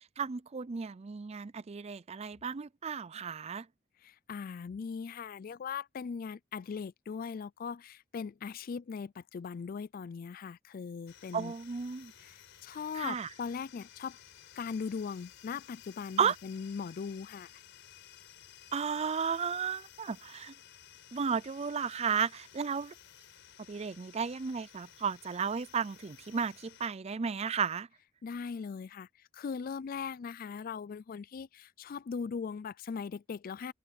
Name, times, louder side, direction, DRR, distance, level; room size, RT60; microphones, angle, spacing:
voice 1, 0.2-3.7 11.3-12.1 12.9-13.3 16.2-16.4 18.7-20.5 21.1-22.9 23.7-27.9, right 6 dB, 30° right, 0.4 m, -33 dB
voice 2, 4.0-11.5 12.2-14.2 14.6-17.5 28.2-29.1 29.3-33.7, left 6 dB, 45° left, 0.3 m, -39 dB
sound 1, 11.1-26.9, left 10 dB, 60° left, 5.9 m, -56 dB
head